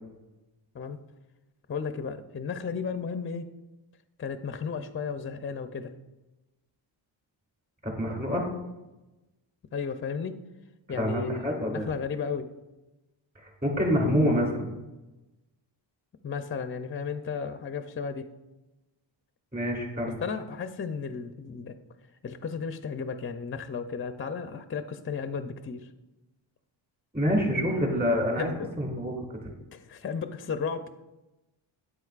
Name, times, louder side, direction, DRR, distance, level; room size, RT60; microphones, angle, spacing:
voice 1, 1.7-3.5 4.2-6.0 9.7-10.3 10.9-12.5 16.2-18.3 20.2-21.8 22.2-25.9 28.4-28.7 29.7-30.9, left 5 dB, 30° left, 9 dB, 0.4 m, -34 dB
voice 2, 7.8-8.5 11.0-11.9 13.4-14.7 19.5-20.2 27.1-28.5 28.8-29.1, equal, 20° right, 0 dB, 2.6 m, -26 dB
9.1 x 7.9 x 2.4 m, 1.0 s
cardioid pair, 75°, 47 cm